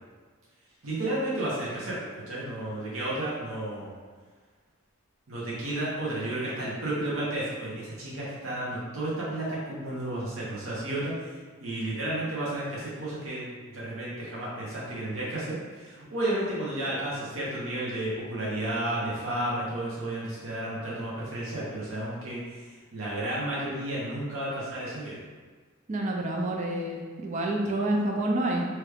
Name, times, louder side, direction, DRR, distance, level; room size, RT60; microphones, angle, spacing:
voice 1, 0.8-2.0 2.3-3.9 5.3-13.4 13.7-25.2, right 1 dB, 75° right, -7 dB, 0.9 m, -32 dB
voice 2, 25.9-28.7, right 1 dB, 35° right, 0 dB, 0.4 m, -28 dB
3.0 x 2.3 x 3.3 m, 1.5 s
head